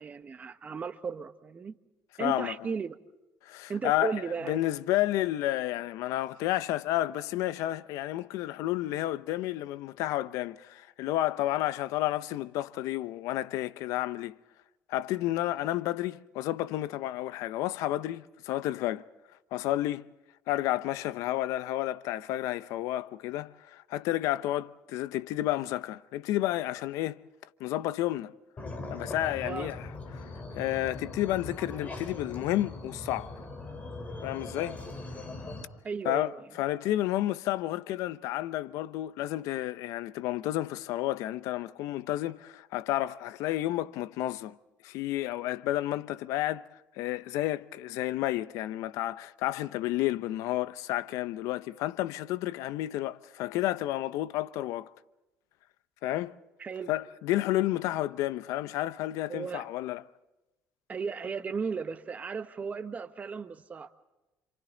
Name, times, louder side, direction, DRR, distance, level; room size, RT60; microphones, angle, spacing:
voice 1, 0.0-1.8 2.2-3.0 3.7-4.6 29.4-29.7 35.8-36.5 56.6-56.9 59.3-59.7 60.9-63.9, right 5 dB, 30° right, 1.4 m, -35 dB
voice 2, 2.2-2.5 3.4-4.2 4.5-14.4 14.9-19.1 19.5-20.1 20.5-27.2 27.6-28.3 28.9-29.8 30.2-30.3 30.5-33.3 34.2-34.8 36.1-36.3 36.6-44.6 44.8-46.7 47.0-54.9 56.0-56.4 56.9-60.0, left 15 dB, 80° left, 0.8 m, -31 dB
sound 1, 28.6-35.6, left 2 dB, 30° left, 4.2 m, -40 dB
29.0 x 27.5 x 3.9 m
cardioid pair, 130°, 5 cm